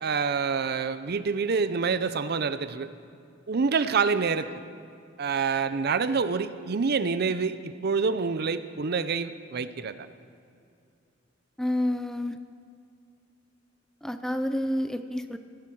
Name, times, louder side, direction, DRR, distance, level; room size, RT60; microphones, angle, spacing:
voice 1, 0.0-2.9 3.5-4.5 5.2-9.9, right 5 dB, 55° right, 12 dB, 0.6 m, -27 dB
voice 2, 11.6-12.4 14.0-15.4, left 1 dB, 5° left, 9 dB, 0.4 m, -29 dB
16.0 x 10.0 x 6.3 m, 2.4 s
head